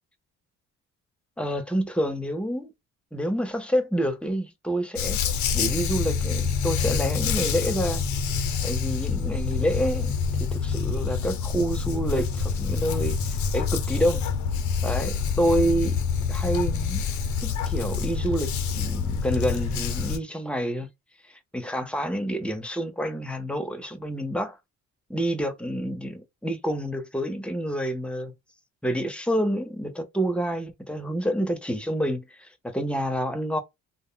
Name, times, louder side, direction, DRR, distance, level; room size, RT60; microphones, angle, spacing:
voice 1, 1.4-2.7 3.1-5.2 5.5-8.0 8.6-10.1 10.4-14.2 14.8-16.0 16.3-17.0 17.4-20.9 21.5-24.6 25.1-28.3 28.8-33.6, equal, 5° left, 0.6 m, -28 dB
Dog, 5.0-20.2, left 6 dB, 70° left, 0.6 m, -27 dB
2.1 x 2.0 x 3.6 m
cardioid pair, 90°, 30 cm